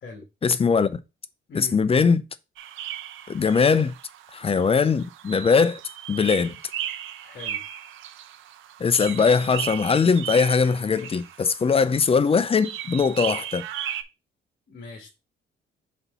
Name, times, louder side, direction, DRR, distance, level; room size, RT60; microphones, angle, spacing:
voice 1, 0.4-1.0 1.5-2.2 3.3-3.9 4.3-5.8 6.1-6.5 8.8-13.6, left 5 dB, 30° left, 0.5 m, -21 dB
sound 1, 2.6-14.0, right 11 dB, 85° right, 0.7 m, -36 dB
voice 2, 7.2-7.6 14.7-15.1, left 3 dB, 55° left, 1.6 m, -40 dB
4.3 x 4.1 x 5.4 m
cardioid pair, 90°, 20 cm